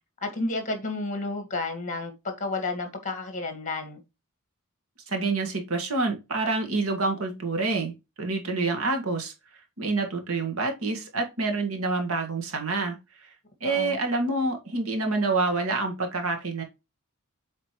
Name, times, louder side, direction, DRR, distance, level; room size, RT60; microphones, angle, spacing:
voice 1, 0.2-4.0 13.6-14.0, left 2 dB, 35° left, 1.9 m, -31 dB
voice 2, 5.1-7.9 8.2-9.3 9.8-13.0 13.2-13.3 13.6-16.6, right 3 dB, 75° right, 1.8 m, -27 dB
8.0 x 4.2 x 3.1 m
head